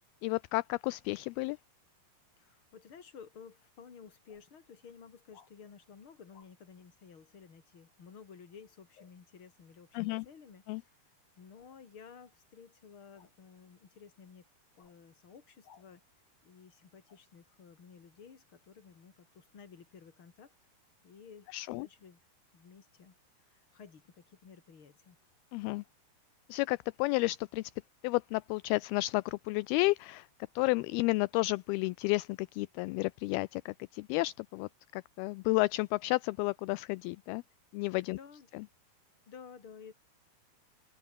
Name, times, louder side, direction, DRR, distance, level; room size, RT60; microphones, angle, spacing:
voice 1, 0.2-1.6 9.9-10.3 10.7-10.8 21.5-21.9 25.5-25.8 26.5-27.7 28.0-30.3 30.6-37.4 37.7-38.2 38.5-38.6, left 22 dB, 80° left, 2.4 m, -32 dB
voice 2, 2.4-11.0 11.4-14.4 14.8-16.0 16.4-20.5 21.0-22.2 22.5-25.2 38.2-38.5 39.3-39.9, left 6 dB, 35° left, 3.4 m, -54 dB
sound 1, 3.6-3.7 4.3-4.5 5.3-5.5 6.3-6.5 8.9-9.2 11.5-11.8 13.1-13.4 14.8-15.0 15.6-15.9 17.1-17.2, left 7 dB, 60° left, 5.1 m, -62 dB
open air
omnidirectional pair, 4.7 m